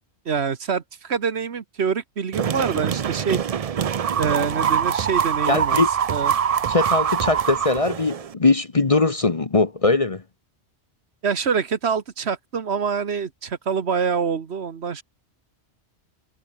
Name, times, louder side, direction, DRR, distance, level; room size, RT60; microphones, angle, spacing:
voice 1, 0.2-3.4 4.2-5.8 6.1-6.3 11.2-15.0, right 6 dB, 65° right, 1.5 m, -25 dB
sound 1, 2.3-8.3, right 8 dB, 50° right, 0.5 m, -24 dB
voice 2, 5.5-5.9 6.7-10.2, left 3 dB, 30° left, 1.0 m, -20 dB
omnidirectional pair, 1.2 m